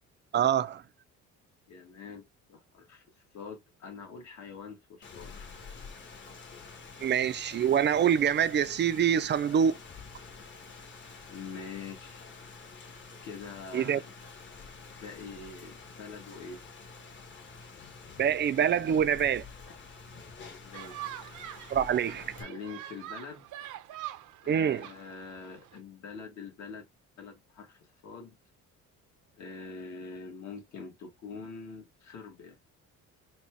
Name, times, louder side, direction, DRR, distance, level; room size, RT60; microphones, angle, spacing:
voice 1, 0.3-0.8 7.0-9.8 13.7-14.0 18.2-19.4 21.7-22.3 24.5-24.9, right 8 dB, 35° right, 0.4 m, -25 dB
voice 2, 1.7-5.5 11.3-12.3 13.2-14.1 14.8-16.6 20.6-21.0 21.8-23.5 24.4-26.9 27.2-28.4 29.3-32.6, left 5 dB, 60° left, 1.7 m, -45 dB
Rain, 5.0-22.4, left 4 dB, 35° left, 1.2 m, -48 dB
sound 1, 20.7-25.8, right 13 dB, 70° right, 0.7 m, -44 dB
4.2 x 2.3 x 4.5 m
cardioid pair, 125°, 32 cm